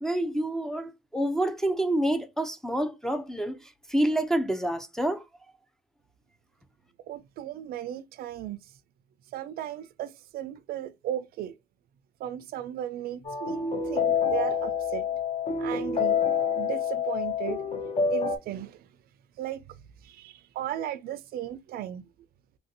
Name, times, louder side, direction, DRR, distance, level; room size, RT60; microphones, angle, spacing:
voice 1, 0.0-3.6 3.9-5.2, right 1 dB, 5° left, 0.4 m, -27 dB
voice 2, 7.1-8.7 9.3-11.6 12.2-15.1 15.6-16.2 16.6-18.9 19.4-19.8 20.0-22.0, right 11 dB, 65° right, 0.4 m, -36 dB
sound 1, 13.2-18.4, left 6 dB, 40° left, 0.6 m, -27 dB
3.2 x 2.5 x 2.6 m
cardioid pair, 110°, 17 cm